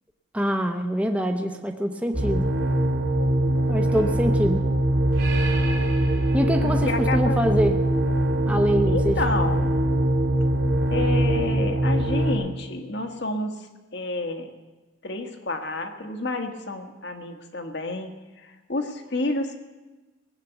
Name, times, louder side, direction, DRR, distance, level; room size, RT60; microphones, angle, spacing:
voice 1, 0.3-2.5 3.7-4.7 6.3-7.8 8.4-9.2, equal, 5° right, 4 dB, 0.8 m, -24 dB
sound 1, 2.1-12.3, right 1 dB, 65° right, 2.9 m, -22 dB
voice 2, 6.6-7.4 8.9-9.7 10.9-13.5 13.9-14.5 15.0-18.1 18.4-19.6, left 2 dB, 55° left, 5 dB, 1.3 m, -30 dB
18.5 x 7.6 x 8.0 m, 1.2 s
head